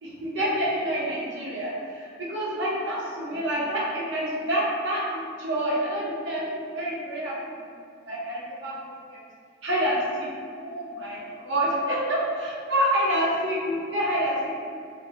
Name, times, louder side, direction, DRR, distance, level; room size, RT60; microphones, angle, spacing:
voice 1, 0.0-7.4 8.1-9.2 9.6-10.3 10.6-14.6, equal, 70° right, -6 dB, 0.7 m, -27 dB
3.8 x 2.8 x 2.2 m, 2.3 s
head